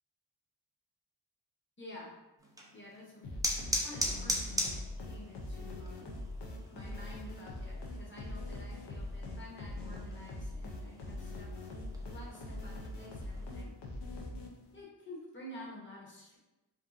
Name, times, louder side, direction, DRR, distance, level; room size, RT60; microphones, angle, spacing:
voice 1, 1.8-2.2 2.7-3.3 3.8-6.1 6.7-11.5 12.0-13.7 14.7-16.4, left 1 dB, 30° left, -4 dB, 0.8 m, -50 dB
sound 1, 2.4-13.5, equal, 10° right, 0.4 m, -41 dB
sound 2, 3.2-14.8, left 1 dB, 80° left, 0.5 m, -42 dB
2.6 x 2.3 x 2.4 m, 1.0 s
wide cardioid pair, 70°, 41 cm